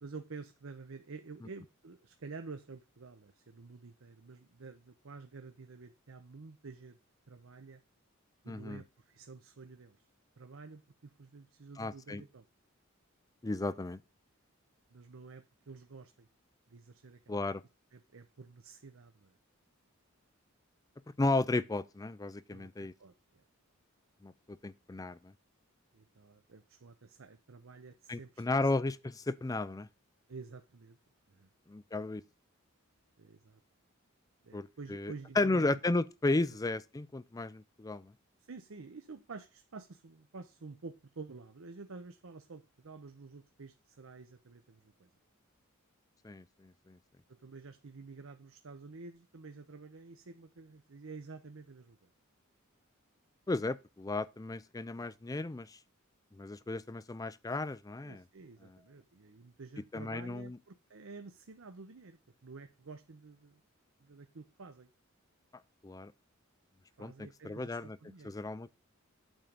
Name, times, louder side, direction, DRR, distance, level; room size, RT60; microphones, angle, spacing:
voice 1, 0.0-7.0 7.3-7.8 8.4-10.1 10.4-12.5 14.9-16.3 16.7-17.4 17.9-19.4 22.5-23.4 25.9-28.6 30.3-31.0 31.3-31.5 33.2-33.6 34.4-35.7 38.5-45.1 47.4-52.1 55.0-55.1 58.0-63.6 64.0-64.9 67.0-68.5, right 4 dB, 70° right, 0.7 m, -50 dB
voice 2, 8.5-8.8 11.8-12.2 13.4-14.0 17.3-17.6 21.2-22.9 24.2-25.3 28.1-29.9 31.7-32.2 34.5-38.1 46.2-47.0 53.5-55.8 56.3-58.2 59.9-60.6 65.8-66.1 67.0-68.0 68.2-68.7, left 2 dB, 15° left, 0.4 m, -34 dB
8.9 x 3.8 x 6.8 m
head